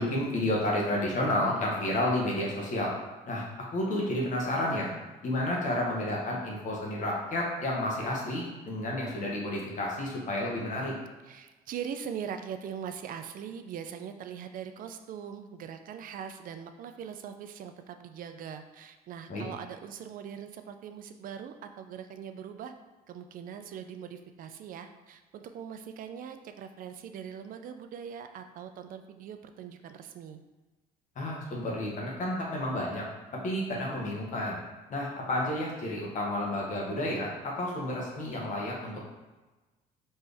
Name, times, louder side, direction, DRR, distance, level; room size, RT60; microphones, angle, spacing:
voice 1, 0.0-2.9 3.3-4.9 5.2-10.9 19.3-19.4 31.1-33.1 33.3-34.6 34.9-39.0, left 1 dB, 50° left, -3 dB, 1.2 m, -31 dB
voice 2, 11.3-22.7 23.1-30.4, right 8 dB, 55° right, 8 dB, 0.4 m, -41 dB
4.3 x 3.2 x 3.4 m, 1.2 s
cardioid pair, 110°, 17 cm